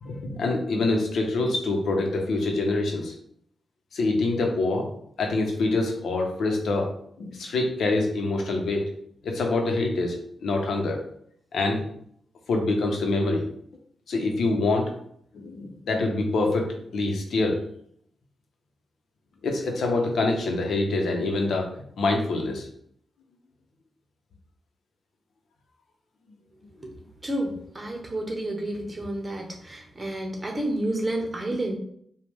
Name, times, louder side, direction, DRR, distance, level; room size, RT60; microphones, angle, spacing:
voice 1, 0.0-3.1 3.9-4.9 5.2-6.9 7.2-8.9 9.2-11.0 11.5-11.8 12.5-13.4 14.1-14.9 15.3-17.6 19.4-22.7, left 2 dB, 75° left, 2 dB, 0.9 m, -25 dB
voice 2, 27.2-31.8, right 1 dB, 30° right, 1 dB, 1.1 m, -30 dB
5.0 x 2.4 x 3.5 m, 0.67 s
cardioid pair, 70°, 0 cm